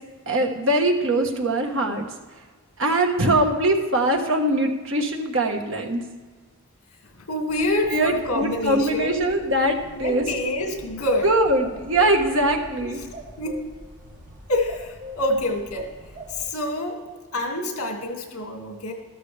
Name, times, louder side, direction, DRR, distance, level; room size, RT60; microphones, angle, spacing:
voice 1, 0.3-2.1 2.8-6.0 7.9-10.2 11.2-13.0, right 1 dB, 60° right, 3 dB, 1.4 m, -22 dB
voice 2, 7.2-9.2 9.9-11.3 12.8-13.1 13.4-13.6 14.5-15.9 16.3-17.0 17.3-18.9, left 1 dB, 75° left, 2 dB, 2.2 m, -27 dB
sound 1, 7.5-16.5, left 1 dB, 35° right, 1.5 m, -43 dB
13.5 x 13.0 x 3.4 m, 1.4 s
head